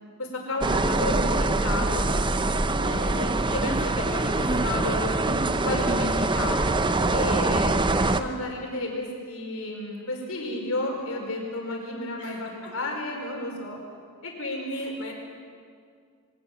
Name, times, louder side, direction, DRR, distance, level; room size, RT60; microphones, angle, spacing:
voice 1, 0.2-2.1 2.8-6.7 7.1-13.8 14.2-14.9, left 2 dB, 70° left, 1 dB, 4.8 m, -32 dB
sound 1, 0.6-8.2, right 2 dB, 20° right, 0.7 m, -24 dB
voice 2, 12.2-12.8 14.7-15.1, left 4 dB, 85° left, 1 dB, 3.6 m, -45 dB
22.5 x 17.5 x 7.4 m, 2.2 s
head